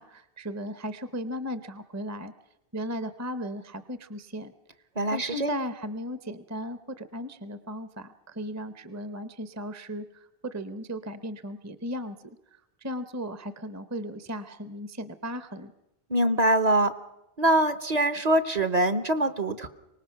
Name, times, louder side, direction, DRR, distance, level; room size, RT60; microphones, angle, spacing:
voice 1, 0.0-2.3 2.7-4.5 5.1-12.3 12.8-15.7, equal, 20° right, 12 dB, 0.7 m, -36 dB
voice 2, 5.0-5.5 16.1-16.9 17.4-19.7, right 1 dB, 45° right, 11 dB, 1.0 m, -23 dB
24.5 x 19.5 x 5.8 m, 0.90 s
omnidirectional pair, 1.0 m